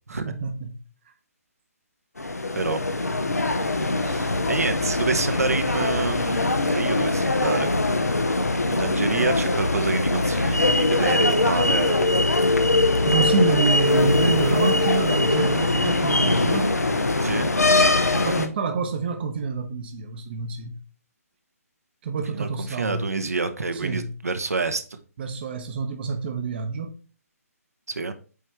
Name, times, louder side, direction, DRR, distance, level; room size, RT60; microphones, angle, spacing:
voice 1, 0.1-0.8 1.1-1.2 13.0-16.7 18.1-20.8 22.0-23.1 23.7-24.1 25.2-26.9, right 4 dB, 40° right, 0.9 m, -27 dB
sound 1, 2.2-18.5, left 2 dB, 80° left, 0.9 m, -22 dB
voice 2, 3.8-7.7 8.7-12.0 17.2-17.5 22.3-22.5 22.8-25.0 27.9-28.1, right 4 dB, 70° right, 1.0 m, -27 dB
8.4 x 3.4 x 4.3 m
figure-of-eight pair, 140°, 8 cm